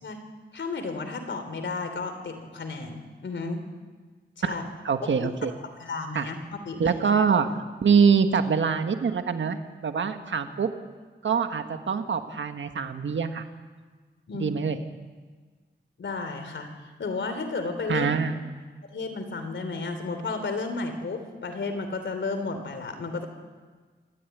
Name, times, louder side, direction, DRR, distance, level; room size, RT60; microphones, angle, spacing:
voice 1, 0.5-3.6 4.4-4.6 5.2-5.3 5.8-6.4 6.6-7.0 14.3-14.5 16.0-16.7 17.0-18.1 18.9-23.3, left 3 dB, 80° left, 7 dB, 3.4 m, -32 dB
voice 2, 4.8-5.5 6.1-6.3 6.8-7.5 7.8-10.7 11.2-13.5 14.4-14.8 17.9-18.4, right 6 dB, 85° right, 7 dB, 1.6 m, -24 dB
24.5 x 14.5 x 9.4 m, 1.4 s
wide cardioid pair, 85°, 19 cm